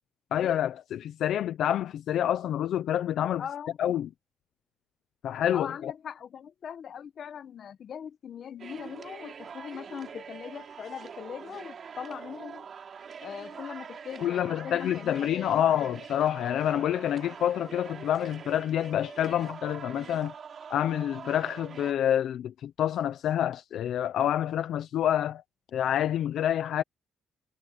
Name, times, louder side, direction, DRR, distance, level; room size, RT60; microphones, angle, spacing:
voice 1, 0.3-3.4 3.8-4.1 5.2-5.9 14.2-20.3 20.7-25.4 25.7-26.8, left 10 dB, 75° left, 0.8 m, -27 dB
voice 2, 3.4-3.8 5.5-12.7 13.2-15.7, left 8 dB, 60° left, 1.2 m, -41 dB
sound 1, 8.6-21.9, right 6 dB, 50° right, 3.3 m, -44 dB
cardioid pair, 90°, 0 cm